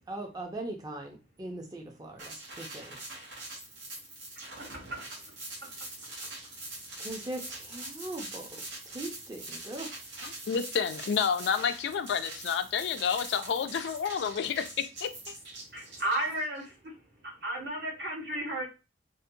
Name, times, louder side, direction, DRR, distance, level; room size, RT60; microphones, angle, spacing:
voice 1, 0.1-3.0 7.0-8.5 8.9-9.9, right 2 dB, 20° right, 2 dB, 0.4 m, -40 dB
sound 1, 2.2-16.6, right 2 dB, 85° right, 0.9 m, -43 dB
voice 2, 10.2-14.7 15.0-15.3, left 7 dB, 70° left, 9 dB, 0.3 m, -30 dB
voice 3, 15.7-16.6 17.4-18.7, right 1 dB, 60° right, -1 dB, 1.0 m, -32 dB
2.6 x 2.1 x 2.6 m, 0.29 s
head